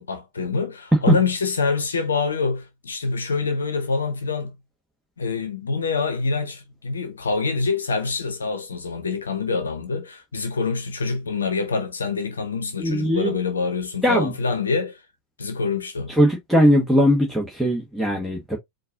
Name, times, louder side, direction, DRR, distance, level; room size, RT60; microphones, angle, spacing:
voice 1, 0.0-4.5 5.2-15.0 15.4-16.1, left 4 dB, 70° left, 0.8 m, -25 dB
voice 2, 12.8-13.3 14.0-14.3 16.2-18.6, equal, 5° right, 1.3 m, -19 dB
4.6 x 2.6 x 3.8 m
figure-of-eight pair, 90°, 0 cm